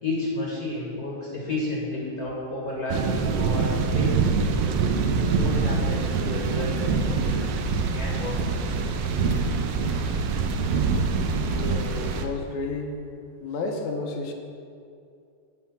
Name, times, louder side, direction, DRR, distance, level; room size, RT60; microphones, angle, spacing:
voice 1, 0.0-4.6 5.3-9.1, left 2 dB, 45° left, -5 dB, 1.3 m, -32 dB
sound 1, 2.9-12.3, right 4 dB, 80° right, 1.5 m, -25 dB
voice 2, 11.4-13.0 13.4-14.3, left 3 dB, 85° left, 3 dB, 2.1 m, -32 dB
8.5 x 5.6 x 5.9 m, 2.5 s
omnidirectional pair, 3.3 m